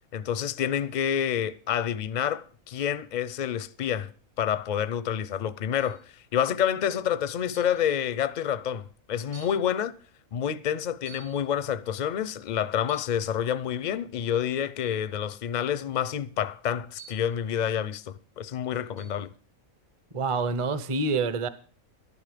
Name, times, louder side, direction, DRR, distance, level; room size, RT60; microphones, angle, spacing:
voice 1, 0.1-4.1 4.4-6.0 6.3-10.0 10.3-19.3, left 9 dB, 50° left, 0.5 m, -28 dB
sound 1, 5.8-6.1 7.5-7.8 8.6-8.7 9.3-9.6 11.1-11.4 12.8-13.2 14.8-15.0 17.0-17.4 19.0-19.2, right 5 dB, 70° right, 3.8 m, -50 dB
voice 2, 20.1-21.5, right 3 dB, 30° right, 0.7 m, -27 dB
12.0 x 11.0 x 5.0 m
omnidirectional pair, 1.4 m